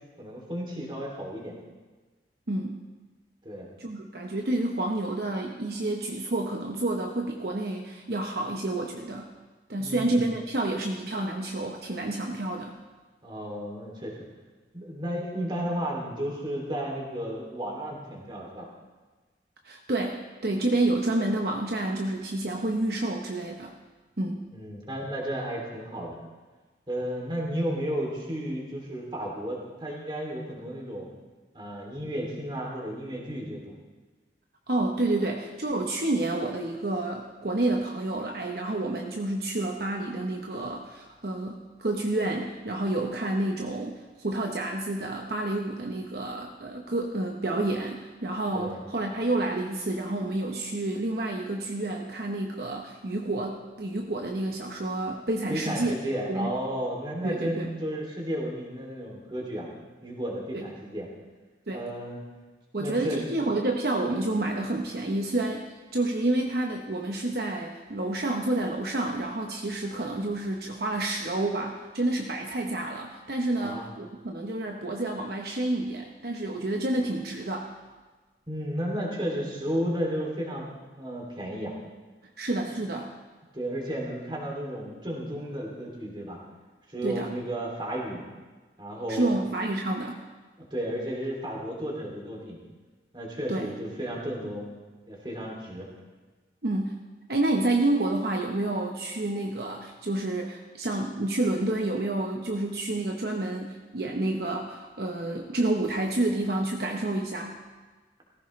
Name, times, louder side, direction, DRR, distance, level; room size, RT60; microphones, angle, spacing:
voice 1, 0.2-1.6 3.4-3.7 9.8-10.3 13.2-14.2 14.7-18.7 24.5-26.2 26.9-31.1 31.5-33.7 48.5-48.8 55.5-59.7 60.0-61.1 61.7-62.2 62.8-63.5 73.6-73.8 78.5-80.7 81.0-81.7 83.5-86.4 86.9-88.2 88.8-89.3 90.6-92.6 93.1-94.7 95.1-95.9, equal, 25° right, -1 dB, 2.7 m, -33 dB
voice 2, 2.5-2.8 3.8-9.3 9.7-12.7 19.6-23.7 24.2-24.5 34.7-56.0 56.3-56.5 57.2-57.7 60.5-60.7 61.7-61.9 62.7-77.7 82.4-83.1 87.0-87.3 89.1-90.2 93.5-93.7 96.6-96.9 97.3-107.6, right 2 dB, 60° right, 2 dB, 0.9 m, -29 dB
17.5 x 15.0 x 3.2 m, 1.3 s
head